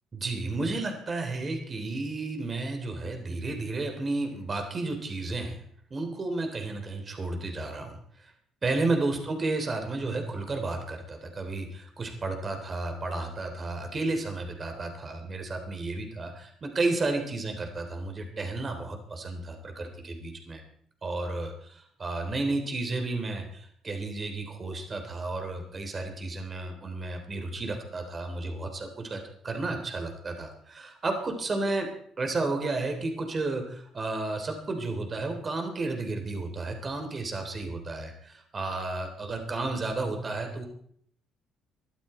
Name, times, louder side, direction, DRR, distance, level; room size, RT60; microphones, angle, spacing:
voice 1, 0.1-5.6 5.9-8.3 8.6-20.6 21.0-31.9 32.2-40.7, right 2 dB, 30° right, 4 dB, 3.4 m, -32 dB
22.5 x 13.0 x 4.4 m, 0.63 s
cardioid pair, 125°, 0 cm